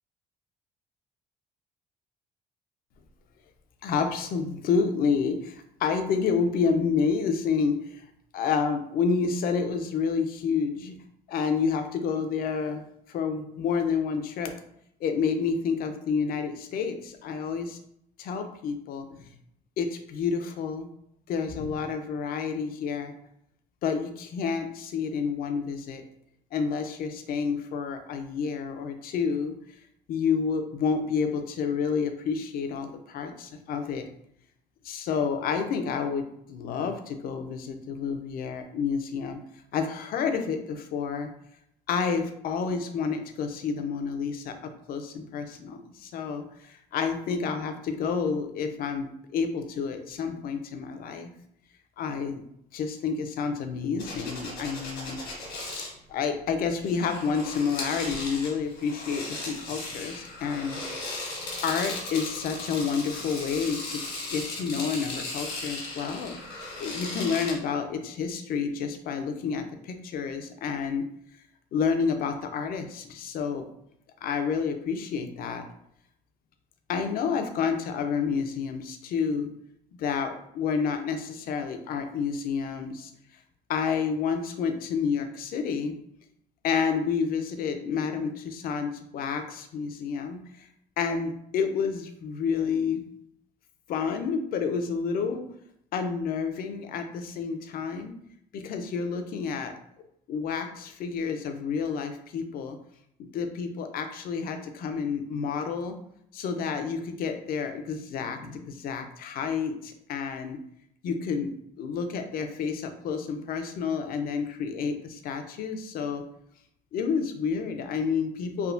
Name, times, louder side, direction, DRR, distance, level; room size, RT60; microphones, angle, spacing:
voice 1, 3.8-8.0 8.3-11.0 11.3-12.8 13.1-14.5 15.0-17.8 18.2-19.2 19.8-20.9 21.3-23.1 23.8-26.0 26.5-29.6 30.1-34.1 34.8-39.4 39.7-41.3 41.9-51.3 52.0-52.4 52.7-55.2 56.1-60.8 61.6-64.0 64.3-71.0 71.7-73.6 74.2-75.7 76.9-79.5 79.9-83.1 83.7-86.0 86.6-90.7 91.0-93.0 93.9-95.5 95.9-98.1 98.5-99.7 100.3-102.8 103.2-105.9 106.3-110.6 111.0-111.5 111.8-116.2 116.9-118.7, left 6 dB, 60° left, 7 dB, 0.4 m, -29 dB
sound 1, 54.0-55.9 56.7-67.6, left 2 dB, 85° left, 1.2 m, -37 dB
3.3 x 2.1 x 2.4 m, 0.74 s
cardioid pair, 110°, 17 cm